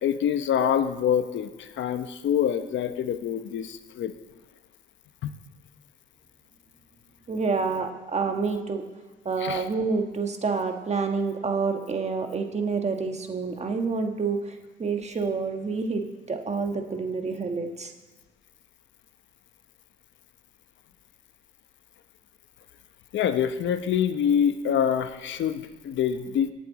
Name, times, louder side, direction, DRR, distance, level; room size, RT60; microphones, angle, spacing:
voice 1, 0.0-4.1 5.2-5.3 9.4-9.6 23.1-26.5, left 8 dB, 70° left, 10 dB, 0.9 m, -26 dB
voice 2, 7.3-8.8 9.2-17.9, right 4 dB, 35° right, 4 dB, 1.4 m, -28 dB
18.0 x 7.6 x 4.1 m, 1.3 s
cardioid pair, 90°, 20 cm